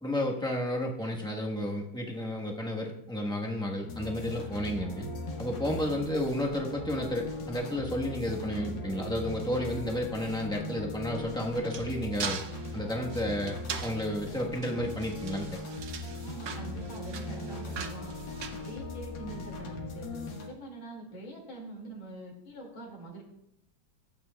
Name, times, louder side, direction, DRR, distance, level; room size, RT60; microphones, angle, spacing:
voice 1, 0.0-5.1 5.4-12.4 12.7-15.5, left 1 dB, 5° left, -1 dB, 0.7 m, -32 dB
sound 1, 3.9-20.5, left 2 dB, 70° left, 2.0 m, -39 dB
sound 2, 11.1-19.3, right 6 dB, 55° right, 0.8 m, -41 dB
voice 2, 16.2-18.1 18.5-23.2, right 2 dB, 85° left, -2 dB, 3.1 m, -44 dB
15.0 x 8.6 x 2.3 m, 0.81 s
omnidirectional pair, 2.1 m